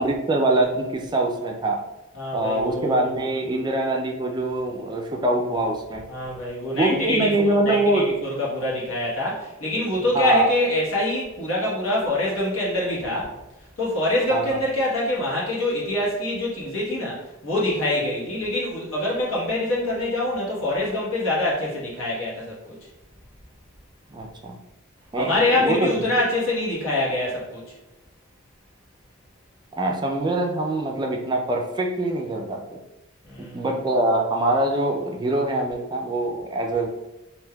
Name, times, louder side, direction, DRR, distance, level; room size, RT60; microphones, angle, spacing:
voice 1, 0.0-1.8 2.3-6.0 6.7-8.0 10.1-10.5 14.3-14.6 24.1-24.5 25.1-26.1 29.8-32.8 33.4-36.9, right 2 dB, 20° right, 1 dB, 0.3 m, -24 dB
voice 2, 2.1-3.1 3.5-3.6 6.1-7.3 7.7-13.3 13.8-22.6 25.2-27.6 33.2-33.6, left 1 dB, 80° left, -5 dB, 1.2 m, -25 dB
3.5 x 2.6 x 2.2 m, 1.0 s
head